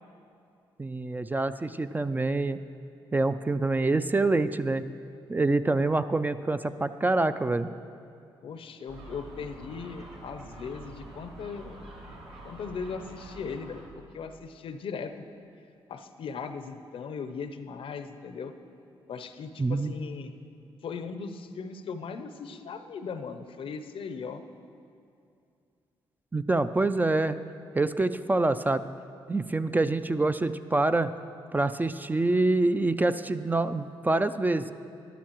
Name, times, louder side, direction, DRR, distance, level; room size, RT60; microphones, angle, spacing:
voice 1, 0.8-2.6 3.1-4.8 5.3-7.7 19.6-19.9 26.3-27.4 27.7-28.9 29.3-31.1 31.5-34.6, right 2 dB, 20° right, 11 dB, 0.3 m, -26 dB
voice 2, 8.4-11.8 12.4-13.9 14.1-15.2 15.9-18.5 19.1-20.3 20.8-24.4, left 5 dB, 65° left, 9 dB, 0.6 m, -38 dB
Gull seagull, 8.9-13.9, right 1 dB, 70° right, 1.8 m, -46 dB
13.0 x 11.5 x 3.0 m, 2.5 s
supercardioid pair, 60°, 10 cm